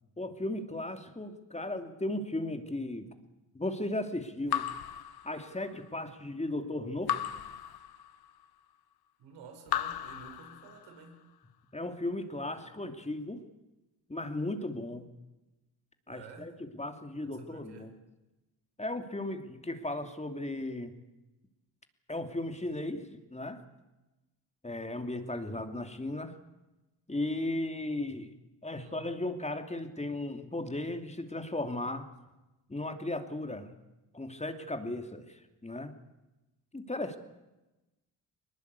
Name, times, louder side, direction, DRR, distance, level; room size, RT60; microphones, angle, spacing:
voice 1, 0.2-3.1 3.5-4.7 5.2-7.2 11.7-13.4 14.1-15.1 16.1-18.0 18.8-20.9 22.1-23.6 24.6-26.4 27.1-28.3 28.6-32.1 32.7-33.7 34.1-35.9 36.7-37.2, left 1 dB, 15° left, 7 dB, 2.7 m, -36 dB
Raindrop / Drip, 4.5-5.9 7.1-8.4 9.7-11.1, left 10 dB, 65° left, 1.5 m, -36 dB
voice 2, 9.2-11.3 16.1-16.6 17.2-17.9 28.7-29.1, right 5 dB, 80° right, 5 dB, 5.1 m, -51 dB
21.5 x 20.5 x 8.4 m, 1.0 s
supercardioid pair, 65°, 42 cm